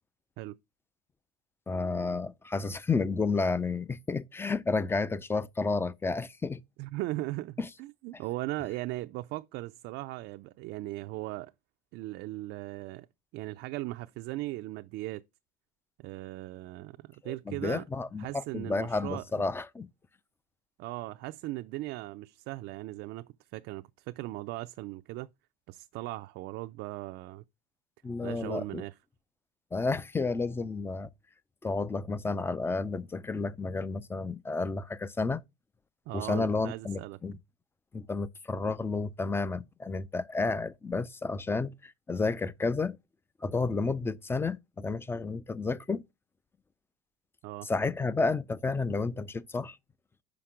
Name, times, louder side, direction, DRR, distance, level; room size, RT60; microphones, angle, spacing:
voice 1, 1.7-6.6 7.6-7.7 17.2-19.9 28.0-28.8 29.7-31.1 31.6-35.4 36.1-37.4 37.9-43.0 43.4-46.0 47.6-49.8, left 3 dB, 10° left, 0.3 m, -31 dB
voice 2, 6.8-11.5 11.9-13.1 13.3-15.2 16.0-17.8 18.2-19.4 20.8-25.3 25.7-27.4 28.2-28.9 36.1-37.2 47.4-47.7, right 18 dB, 60° right, 0.4 m, -38 dB
5.8 x 5.1 x 4.8 m
cardioid pair, 125°, 21 cm